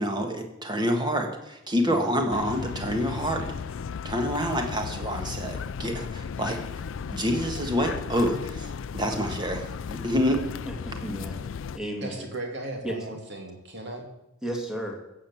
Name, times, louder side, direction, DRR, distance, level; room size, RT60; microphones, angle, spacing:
voice 1, 0.0-3.5 4.0-6.6 7.1-8.7 8.9-10.4, equal, 20° right, 4 dB, 1.7 m, -27 dB
voice 2, 1.8-2.2 10.7-11.4 11.7-12.2 12.8-13.0 14.4-15.0, right 1 dB, 5° right, 1 dB, 2.1 m, -33 dB
sound 1, 2.3-11.8, left 6 dB, 65° left, 0.4 m, -35 dB
voice 3, 12.0-14.0, right 2 dB, 55° right, 2 dB, 2.7 m, -36 dB
15.5 x 7.5 x 7.2 m, 0.91 s
head